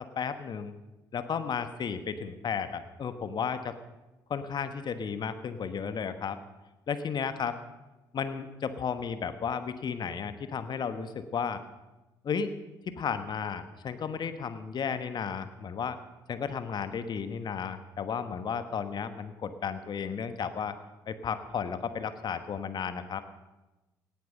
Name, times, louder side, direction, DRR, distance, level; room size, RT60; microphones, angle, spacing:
voice 1, 0.2-0.7 1.1-3.7 4.3-6.4 6.9-7.6 8.1-11.6 12.2-12.5 12.9-16.0 16.3-20.7 21.1-23.2, left 6 dB, 45° left, 10 dB, 1.2 m, -33 dB
17.5 x 9.3 x 6.5 m, 1.1 s
hypercardioid pair, 45°, 10 cm